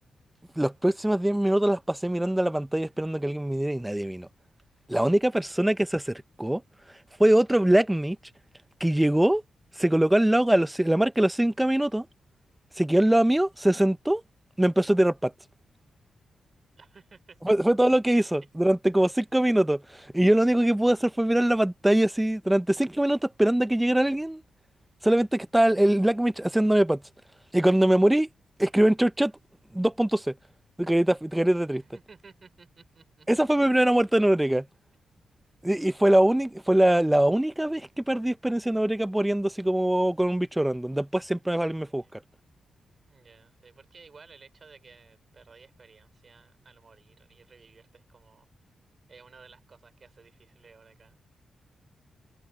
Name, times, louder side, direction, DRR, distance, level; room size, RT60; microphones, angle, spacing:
voice 1, 0.6-4.3 4.9-6.6 7.2-8.2 8.8-9.4 9.8-12.1 12.8-14.2 14.6-15.3 17.4-24.4 25.0-27.0 27.5-28.3 28.6-29.3 29.7-30.3 30.8-31.8 33.3-34.7 35.6-42.2, right 1 dB, 5° right, 0.8 m, -23 dB
voice 2, 16.8-17.4 31.7-33.3 41.5-42.1 43.1-48.5 49.1-51.2, right 4 dB, 40° right, 5.5 m, -55 dB
wide cardioid pair, 115°, 0 cm